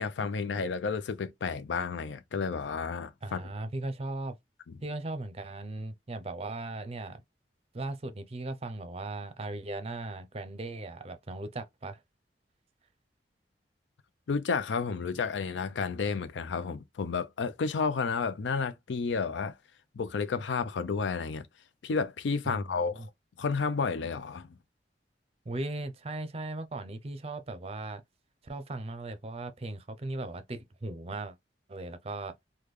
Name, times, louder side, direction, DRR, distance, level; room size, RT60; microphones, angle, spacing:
voice 1, 0.0-3.5 4.7-4.8 14.3-19.6 19.9-21.5 21.8-23.1 23.4-24.6, left 5 dB, 90° left, 0.4 m, -31 dB
voice 2, 3.2-4.3 4.8-7.2 7.7-12.0 22.5-23.1 25.5-28.0 28.4-31.4 31.7-32.4, right 2 dB, 35° right, 0.6 m, -38 dB
3.6 x 2.2 x 3.1 m
head